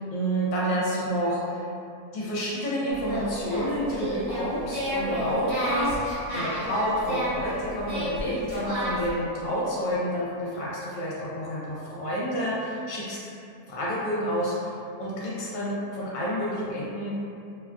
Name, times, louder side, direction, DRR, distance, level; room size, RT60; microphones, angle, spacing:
voice 1, 0.1-1.6 2.1-5.9 6.3-13.3 13.7-14.7 15.0-17.1, equal, 65° left, -7 dB, 1.0 m, -29 dB
Singing, 2.9-9.1, right 1 dB, 55° right, 1.1 m, -31 dB
2.7 x 2.3 x 2.3 m, 2.6 s
omnidirectional pair, 1.6 m